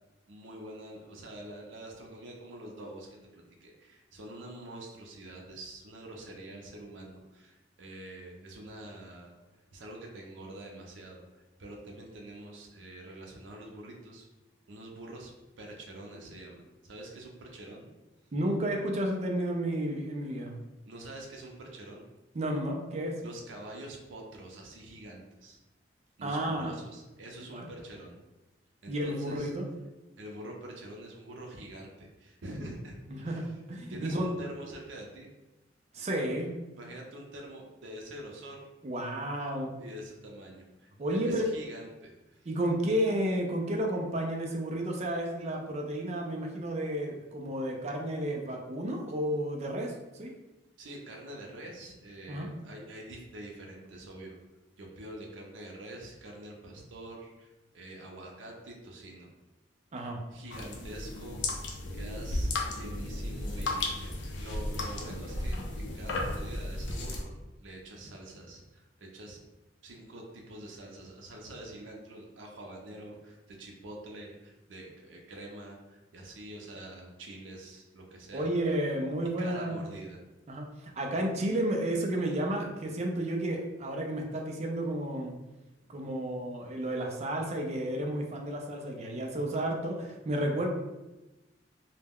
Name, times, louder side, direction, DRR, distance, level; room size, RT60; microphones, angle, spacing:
voice 1, 0.3-9.4 9.7-14.3 14.7-17.9 20.9-22.1 23.2-25.6 26.2-28.2 28.8-29.5 30.2-33.6 33.9-35.3 36.7-38.7 39.8-42.5 50.8-54.4 54.8-59.3 60.3-69.4 69.8-78.5 79.4-80.2, right 1 dB, 90° right, 0 dB, 0.5 m, -46 dB
voice 2, 18.3-20.6 22.3-23.2 26.2-26.8 27.5-27.7 28.9-29.7 33.1-34.3 35.9-36.6 38.8-39.8 41.0-41.4 42.5-50.3 52.3-52.5 59.9-60.2 78.3-79.8 80.5-85.4 85.9-90.7, right 1 dB, 35° right, 1 dB, 0.4 m, -32 dB
sound 1, 60.5-67.2, left 2 dB, 75° left, 0.4 m, -34 dB
2.2 x 2.1 x 3.4 m, 1.0 s
head